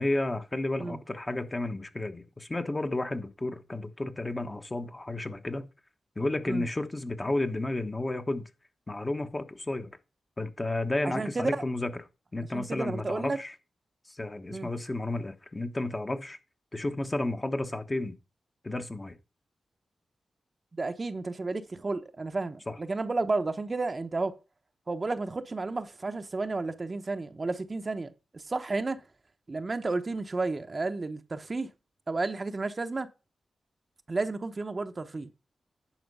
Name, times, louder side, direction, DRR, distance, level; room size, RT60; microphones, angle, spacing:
voice 1, 0.0-5.7 6.1-8.5 8.9-9.9 10.4-11.9 12.3-13.5 14.1-16.4 16.7-18.2 18.6-19.2 22.7-22.8, left 2 dB, 30° left, 1.3 m, -32 dB
voice 2, 11.0-11.6 12.5-13.4 14.5-14.7 20.7-24.4 24.9-29.0 29.5-31.7 32.1-33.1 34.1-35.3, right 3 dB, 45° right, 0.9 m, -32 dB
10.5 x 4.4 x 5.5 m
cardioid pair, 45°, 0 cm